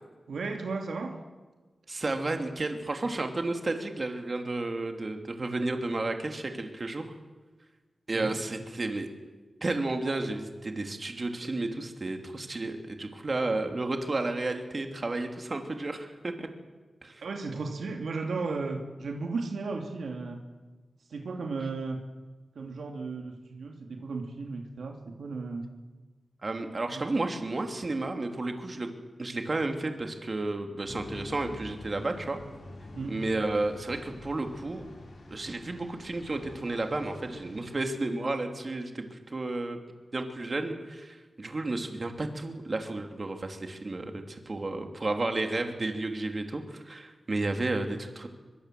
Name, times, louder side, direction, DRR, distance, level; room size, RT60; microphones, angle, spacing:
voice 1, 0.3-1.2 8.1-8.3 17.2-20.4 21.1-22.1 22.5-25.7 26.9-27.1 32.9-33.2, right 3 dB, 90° right, 3 dB, 2.6 m, -35 dB
voice 2, 1.9-7.1 8.1-9.1 9.6-16.5 17.0-17.2 26.4-28.9 29.2-32.4 33.1-34.9 35.3-39.8 40.1-48.3, right 2 dB, 40° right, 5 dB, 2.8 m, -32 dB
sound 1, 30.8-37.7, left 2 dB, 85° left, 7.5 m, -46 dB
23.0 x 22.5 x 7.7 m, 1.3 s
wide cardioid pair, 85°, 0 cm